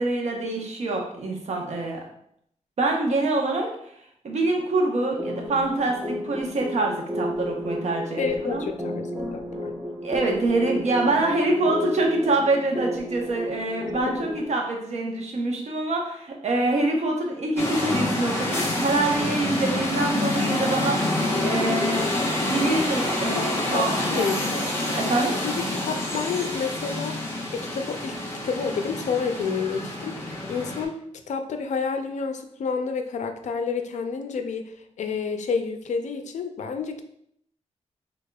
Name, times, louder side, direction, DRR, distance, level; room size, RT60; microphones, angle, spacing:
voice 1, 0.0-2.0 2.8-3.7 4.2-8.7 10.0-21.0 21.4-22.0 22.4-24.6 24.9-25.4, right 2 dB, 65° right, 1 dB, 0.9 m, -25 dB
sound 1, 5.2-14.5, equal, ahead, 0.9 m, -32 dB
voice 2, 8.2-9.7 14.0-14.2 23.7-24.7 25.4-27.2 27.5-28.2 28.4-31.0 31.3-34.7 35.0-37.0, left 5 dB, 75° left, 6 dB, 0.5 m, -29 dB
sound 2, 17.6-30.8, left 1 dB, 20° left, 1.0 m, -27 dB
5.1 x 3.5 x 2.3 m, 0.71 s
wide cardioid pair, 110°, 12 cm